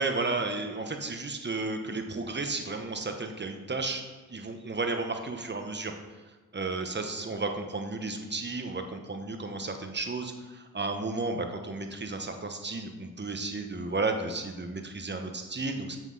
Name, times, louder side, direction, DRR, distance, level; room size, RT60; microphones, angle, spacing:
voice 1, 0.0-4.0 4.3-5.9 6.5-16.0, right 3 dB, 30° right, 5 dB, 1.1 m, -33 dB
7.0 x 5.8 x 4.1 m, 1.2 s
supercardioid pair, 45°, 38 cm